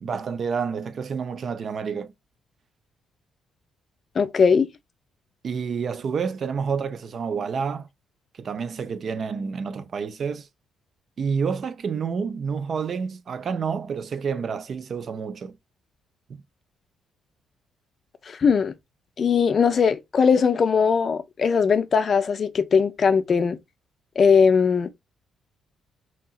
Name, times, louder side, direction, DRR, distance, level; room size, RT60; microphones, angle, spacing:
voice 1, 0.0-2.1 5.4-7.9 8.4-10.5 11.2-15.5, right 6 dB, 50° right, 0.4 m, -29 dB
voice 2, 4.2-4.7 18.3-18.7 19.2-23.6 24.2-24.9, left 6 dB, 45° left, 0.4 m, -20 dB
2.8 x 2.8 x 2.3 m
cardioid pair, 90°, 0 cm